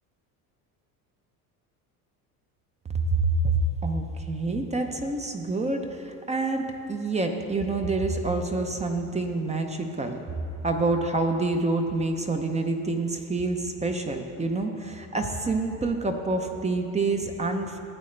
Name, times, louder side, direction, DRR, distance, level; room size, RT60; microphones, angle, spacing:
voice 1, 2.9-10.2 10.6-17.8, right 3 dB, 20° right, 4 dB, 0.6 m, -27 dB
13.0 x 8.4 x 3.3 m, 2.6 s
cardioid pair, 120°, 38 cm